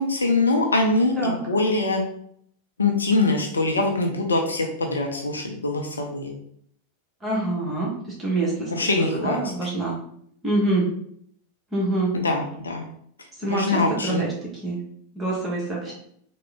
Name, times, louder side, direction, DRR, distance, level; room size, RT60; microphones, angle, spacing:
voice 1, 0.0-2.0 2.8-6.3 8.7-9.4 12.2-12.8 13.4-14.2, left 2 dB, 75° left, 2 dB, 0.5 m, -23 dB
voice 2, 7.2-7.9 8.2-10.0 10.4-10.9 11.7-12.1 13.4-14.3 14.6-14.8 15.1-15.9, right 2 dB, 15° right, -4 dB, 1.1 m, -25 dB
3.6 x 2.1 x 3.4 m, 0.67 s
figure-of-eight pair, 90°, 0 cm